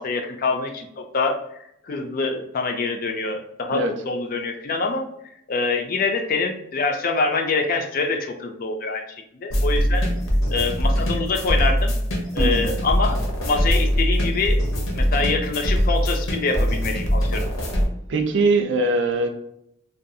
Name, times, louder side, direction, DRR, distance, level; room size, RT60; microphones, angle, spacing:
voice 1, 0.0-1.4 1.8-5.0 5.5-9.0 9.4-10.0 10.5-11.9 12.3-14.6 14.9-17.5, left 4 dB, 45° left, 4 dB, 0.3 m, -25 dB
sound 1, 9.5-17.8, equal, 75° left, 0.7 m, -22 dB
voice 2, 12.4-12.7 18.1-19.3, right 3 dB, 55° right, 6 dB, 0.4 m, -21 dB
2.6 x 2.3 x 2.6 m, 0.75 s
head